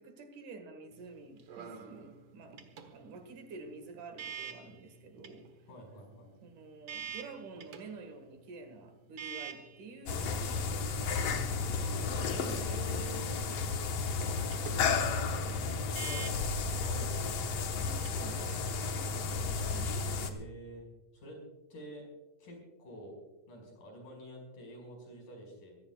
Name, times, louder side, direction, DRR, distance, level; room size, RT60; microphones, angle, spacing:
voice 1, 0.0-2.6 2.9-5.5 6.4-11.9 12.2-13.2 13.5-14.1 17.9-20.0, right 3 dB, 75° right, 7 dB, 3.2 m, -50 dB
sound 1, 0.9-19.5, right 6 dB, 55° right, 2.0 m, -49 dB
voice 2, 5.7-6.3 12.3-13.4 14.6-16.3 16.8-17.9 20.2-20.9 21.1-21.4 21.7-22.1 22.4-23.2 23.5-25.7, equal, 75° left, 0 dB, 6.8 m, -48 dB
sound 2, 10.1-20.3, left 4 dB, 60° left, 2.1 m, -33 dB
24.5 x 16.0 x 2.3 m, 1.0 s
omnidirectional pair, 3.6 m